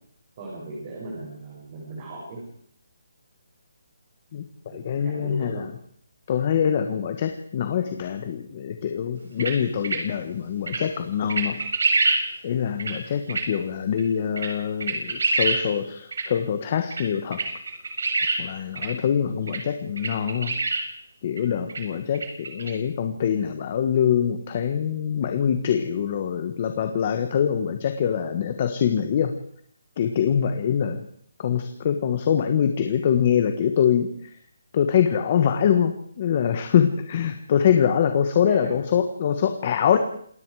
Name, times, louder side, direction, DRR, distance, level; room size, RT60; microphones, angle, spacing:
voice 1, 0.4-2.4 4.7-5.7 38.4-38.7, right 2 dB, 25° right, -4 dB, 6.8 m, -37 dB
voice 2, 4.7-5.7 6.3-11.6 12.4-17.4 18.4-20.5 21.2-29.4 30.0-31.0 31.4-34.1 34.7-40.0, left 8 dB, 25° left, 7 dB, 1.4 m, -24 dB
sound 1, 9.4-9.5 9.8-10.0 10.7-10.8 11.3-12.2 12.8-12.9 13.3-13.4 14.0-14.1 14.4-14.5 14.8-15.6 16.1-16.2 16.9-17.0 17.3-18.4 18.8-18.9 19.5-19.6 20.0-20.8 21.4-21.5 21.7-21.8 22.1-22.7, right 3 dB, 65° right, 7.3 m, -24 dB
27.5 x 20.5 x 4.9 m, 0.63 s
hypercardioid pair, 180°, 0 cm